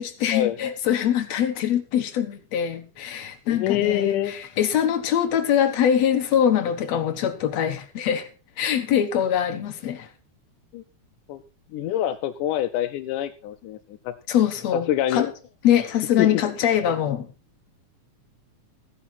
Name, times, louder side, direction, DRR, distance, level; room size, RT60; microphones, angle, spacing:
voice 1, 0.0-8.3 8.6-10.1 14.3-15.3 15.6-17.3, left 9 dB, 65° left, 2.3 m, -23 dB
voice 2, 3.5-4.3 10.7-10.8 11.3-11.4 11.7-13.8 14.1-14.2 14.7-15.3 16.2-16.4, left 12 dB, 85° left, 2.3 m, -25 dB
15.0 x 10.0 x 4.2 m
omnidirectional pair, 3.6 m